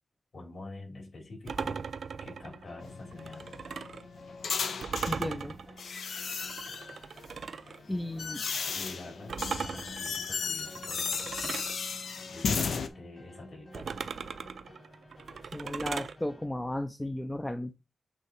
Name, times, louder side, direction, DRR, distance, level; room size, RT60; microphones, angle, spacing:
voice 1, 0.3-1.8 2.2-3.4 8.7-11.6 12.3-13.9, left 2 dB, 50° left, -1 dB, 3.9 m, -46 dB
sound 1, 1.5-4.1 4.8-7.8 9.3-11.8 13.7-16.2, right 6 dB, 65° right, 0.4 m, -38 dB
sound 2, 2.4-16.5, left 1 dB, 30° left, 1.8 m, -52 dB
sound 3, 2.8-5.2 5.8-7.0 7.7-12.9, left 5 dB, 80° left, 0.7 m, -34 dB
voice 2, 5.1-5.6 7.9-8.4 15.5-17.7, left 1 dB, 10° left, 8 dB, 0.4 m, -34 dB
8.2 x 3.6 x 3.3 m, 0.26 s
wide cardioid pair, 140°, 0 cm